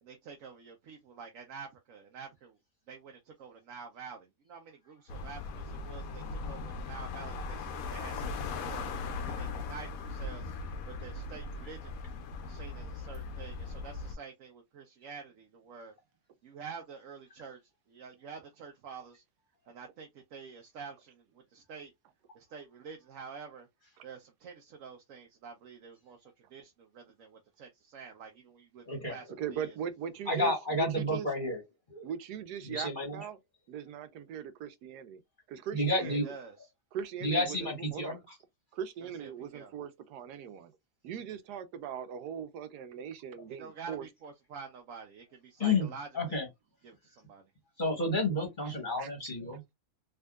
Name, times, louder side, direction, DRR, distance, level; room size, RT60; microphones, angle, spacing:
voice 1, 0.0-2.5 2.9-10.5 11.0-12.0 12.4-15.9 16.4-17.6 17.9-19.2 19.7-21.2 21.5-21.9 22.3-23.7 24.0-29.7 36.0-36.7 39.0-39.7 43.5-46.4 46.8-47.4, right 6 dB, 65° right, 0.9 m, -48 dB
sound 1, 5.1-14.2, left 4 dB, 70° left, 1.0 m, -39 dB
voice 2, 28.9-29.2 30.3-31.6 31.9-32.1 32.6-33.2 35.7-36.3 37.2-38.2 45.6-46.5 47.8-49.7, left 1 dB, 35° left, 1.1 m, -31 dB
voice 3, 29.4-31.3 32.0-33.4 33.7-35.2 35.5-36.3 36.9-38.2 38.7-40.7 41.0-44.0 48.7-49.1, right 8 dB, 90° right, 1.2 m, -40 dB
3.5 x 2.8 x 2.3 m
omnidirectional pair, 1.7 m